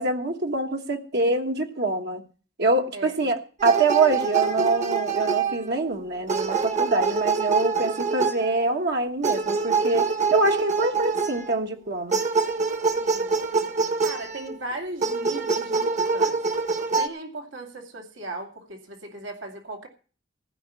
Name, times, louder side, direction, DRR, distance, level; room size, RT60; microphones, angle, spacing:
voice 1, 0.0-2.2 2.6-12.2, right 3 dB, 60° right, 1.4 m, -25 dB
sound 1, 3.6-5.9 6.3-8.6 9.2-11.5 12.1-14.6 15.0-17.1, right 5 dB, 40° right, 1.2 m, -25 dB
voice 2, 13.0-13.7 14.0-19.9, right 2 dB, 80° right, 2.5 m, -38 dB
15.5 x 5.7 x 8.3 m
head